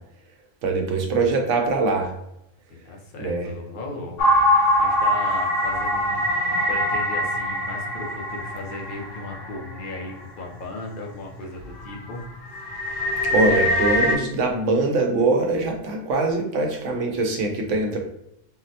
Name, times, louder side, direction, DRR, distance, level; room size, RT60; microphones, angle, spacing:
voice 1, 0.6-2.1 3.2-3.5 13.3-18.0, right 3 dB, 75° right, 2 dB, 1.0 m, -23 dB
voice 2, 2.8-12.3, left 3 dB, 50° left, 0 dB, 0.7 m, -36 dB
sound 1, 4.2-10.0 10.5-10.6 11.1-11.4 11.7-14.2, left 1 dB, 75° left, 0.9 m, -23 dB
3.8 x 2.0 x 2.7 m, 0.79 s
omnidirectional pair, 1.3 m